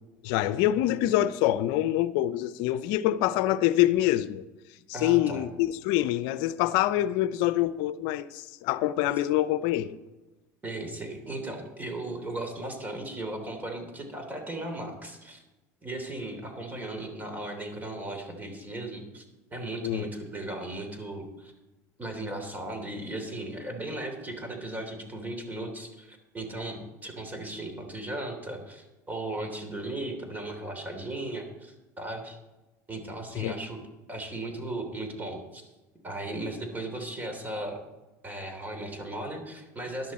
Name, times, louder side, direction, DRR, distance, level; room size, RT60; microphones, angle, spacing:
voice 1, 0.2-4.4 5.0-10.0 19.8-20.1 33.3-33.5, left 14 dB, 70° left, 0.7 m, -25 dB
voice 2, 4.9-5.4 10.6-15.4 15.8-19.2 19.5-21.5 22.0-32.4 32.9-33.8 34.1-35.7 36.0-37.8 38.2-40.1, right 1 dB, 20° right, 3.2 m, -36 dB
13.0 x 11.0 x 4.3 m
supercardioid pair, 90°, 8 cm